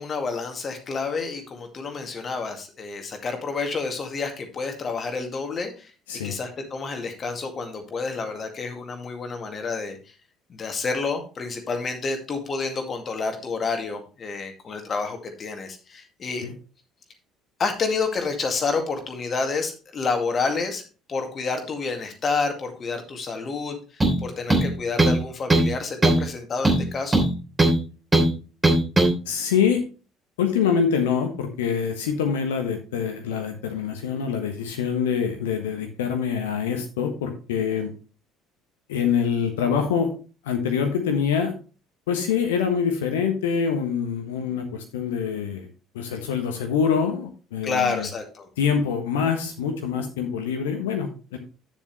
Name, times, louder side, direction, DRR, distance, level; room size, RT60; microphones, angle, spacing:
voice 1, 0.0-5.9 6.2-10.0 10.5-16.5 17.6-20.8 21.1-27.3 47.6-48.5, left 4 dB, 35° left, 5 dB, 2.1 m, -29 dB
sound 1, 24.0-24.2 24.5-25.2 25.5-25.7 26.0-26.3 26.6-27.8 28.1-28.3 28.6-29.1, right 2 dB, 15° right, 3.1 m, -18 dB
voice 2, 29.2-29.8 30.4-37.9 38.9-40.1 40.4-41.5 42.1-45.7 45.9-48.1 48.6-51.4, left 7 dB, 70° left, 5 dB, 1.3 m, -25 dB
9.8 x 7.2 x 3.1 m, 0.33 s
figure-of-eight pair, 55°, 0 cm